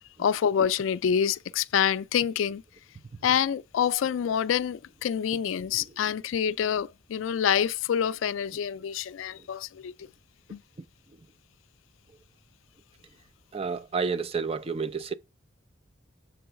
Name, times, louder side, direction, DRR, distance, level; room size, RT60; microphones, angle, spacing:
voice 1, 0.2-2.6 3.2-9.9 10.5-10.6, left 8 dB, 90° left, 0.3 m, -27 dB
voice 2, 13.5-15.1, right 5 dB, 30° right, 0.4 m, -30 dB
6.9 x 3.9 x 4.5 m
head